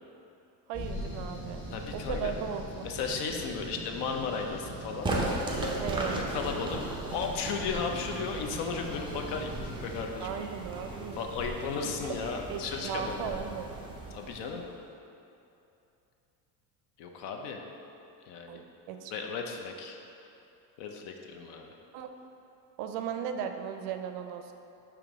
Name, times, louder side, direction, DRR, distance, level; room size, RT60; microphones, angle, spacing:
sound 1, 0.7-10.0, equal, 35° left, 1.5 m, -40 dB
voice 1, 0.7-2.9 5.8-6.4 7.9-8.1 10.2-11.2 11.8-12.1 12.5-13.7 18.5-19.1 21.9-22.1 22.8-24.5, right 8 dB, 65° right, 6 dB, 0.5 m, -37 dB
voice 2, 1.7-2.3 2.8-5.1 6.0-10.3 11.2-13.4 14.1-14.6 17.0-17.6 18.3-18.6 19.1-20.0 20.8-21.8, left 5 dB, 55° left, 3 dB, 0.6 m, -35 dB
sound 2, 5.0-14.8, right 2 dB, 10° right, 0.4 m, -37 dB
4.9 x 3.0 x 3.5 m, 2.8 s
supercardioid pair, 95°, 50 cm